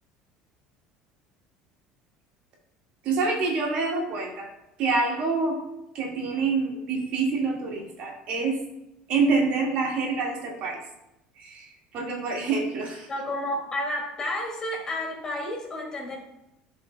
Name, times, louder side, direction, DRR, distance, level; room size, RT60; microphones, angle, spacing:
voice 1, 3.0-4.5 4.8-5.6 5.9-8.6 9.1-10.8 11.4-13.1, right 4 dB, 60° right, 0 dB, 1.8 m, -26 dB
voice 2, 13.1-16.2, left 1 dB, 30° left, -1 dB, 2.4 m, -31 dB
10.5 x 5.3 x 2.2 m, 0.91 s
supercardioid pair, 100°, 2 cm